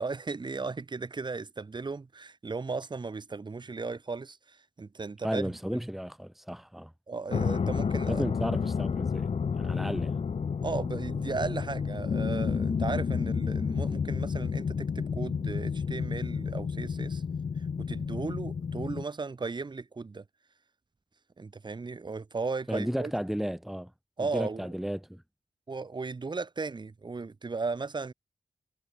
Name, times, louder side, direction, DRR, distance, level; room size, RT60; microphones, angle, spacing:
voice 1, 0.0-5.8 7.1-8.2 10.6-17.2 17.6-20.2 21.4-23.1 24.2-24.7 25.7-28.1, right 4 dB, 45° right, 4.1 m, -36 dB
voice 2, 5.2-6.9 8.1-10.2 22.7-23.9 24.2-25.2, equal, ahead, 2.1 m, -34 dB
sound 1, 7.3-19.0, left 6 dB, 70° left, 2.0 m, -31 dB
wide cardioid pair, 125°, 11 cm